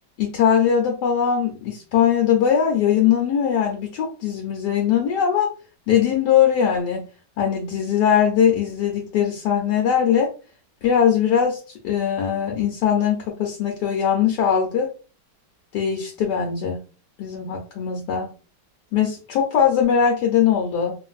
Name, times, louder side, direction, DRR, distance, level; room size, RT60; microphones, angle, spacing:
voice 1, 0.2-5.5 5.9-7.0 7.4-10.3 10.8-14.9 15.7-16.8 17.2-18.3 18.9-20.9, left 8 dB, 75° left, 1 dB, 1.2 m, -20 dB
2.9 x 2.5 x 2.3 m, 0.35 s
omnidirectional pair, 1.9 m